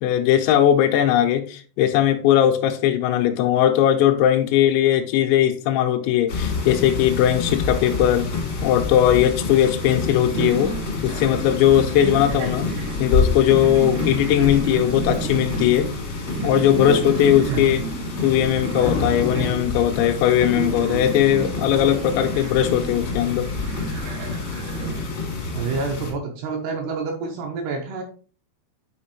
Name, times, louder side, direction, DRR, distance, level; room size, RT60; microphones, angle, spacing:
voice 1, 0.0-8.3 8.6-10.8 11.0-12.7 13.0-15.9 16.4-17.9 18.2-23.5, left 11 dB, 80° left, 2.7 m, -19 dB
sound 1, 6.3-26.1, left 4 dB, 60° left, 1.4 m, -28 dB
sound 2, 10.3-25.1, right 6 dB, 90° right, 3.6 m, -32 dB
voice 2, 25.5-28.0, right 4 dB, 75° right, 2.7 m, -28 dB
8.9 x 4.3 x 3.0 m
omnidirectional pair, 5.5 m